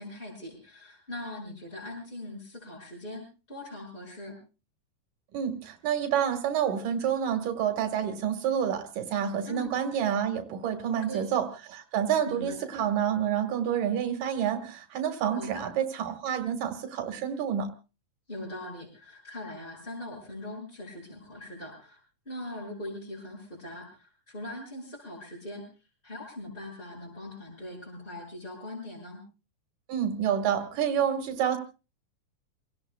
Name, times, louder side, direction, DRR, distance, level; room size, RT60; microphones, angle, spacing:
voice 1, 0.0-4.4 9.4-9.7 10.9-11.3 12.2-12.6 15.3-15.6 18.3-22.0 22.2-29.2, left 1 dB, 15° left, -5 dB, 6.5 m, -41 dB
voice 2, 5.3-17.7 29.9-31.6, right 9 dB, 80° right, 7 dB, 3.1 m, -28 dB
28.5 x 17.5 x 2.2 m, 0.33 s
omnidirectional pair, 3.7 m